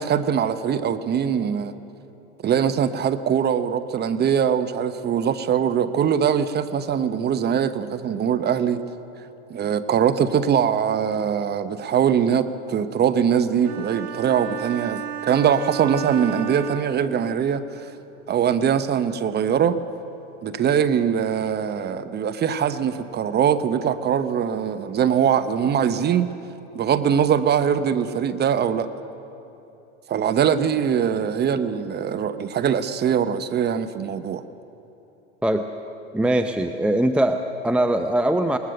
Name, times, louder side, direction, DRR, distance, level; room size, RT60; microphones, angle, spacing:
voice 1, 0.0-1.7 2.4-8.9 9.5-17.8 18.3-19.8 20.4-26.3 26.7-28.9 30.1-34.4, right 8 dB, 30° right, 11 dB, 1.0 m, -22 dB
sound 1, 13.6-17.5, right 9 dB, 50° right, 1.7 m, -33 dB
voice 2, 36.1-38.6, right 1 dB, 5° right, 7 dB, 0.7 m, -21 dB
21.0 x 19.5 x 6.6 m, 2.9 s
hypercardioid pair, 100°, 35 cm